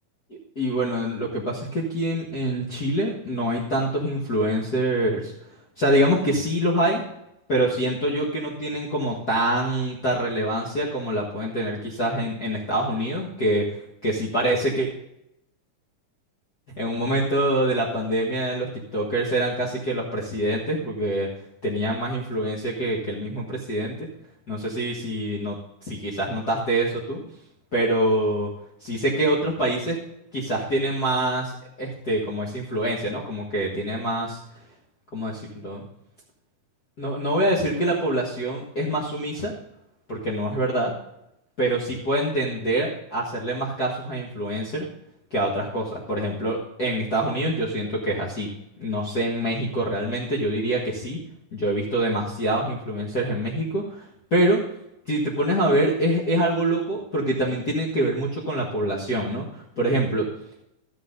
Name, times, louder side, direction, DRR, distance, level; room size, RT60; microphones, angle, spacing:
voice 1, 0.3-5.3 5.8-7.0 7.5-13.7 14.0-14.9 16.8-21.3 21.6-24.1 24.5-25.6 25.8-27.2 27.7-28.5 28.8-30.0 30.3-34.4 35.1-35.8 37.0-39.5 40.1-40.9 41.6-44.8 45.3-48.5 48.8-51.2 51.5-54.6 55.1-60.3, right 1 dB, 40° left, -7 dB, 1.5 m, -25 dB
14.0 x 7.7 x 3.9 m, 0.83 s
omnidirectional pair, 3.9 m